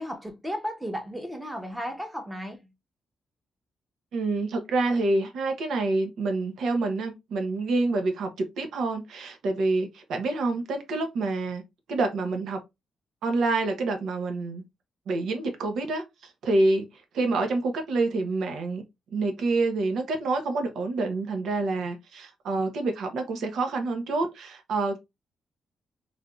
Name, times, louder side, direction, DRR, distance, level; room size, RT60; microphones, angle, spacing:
voice 1, 0.0-2.6, equal, 10° right, 0.8 m, -34 dB
voice 2, 4.1-8.3 8.6-11.6 11.9-12.6 13.2-14.6 15.1-16.0 16.4-16.9 17.1-18.8 19.1-25.0, right 3 dB, 75° right, 0.7 m, -27 dB
3.3 x 2.6 x 2.3 m
cardioid pair, 120°, 0 cm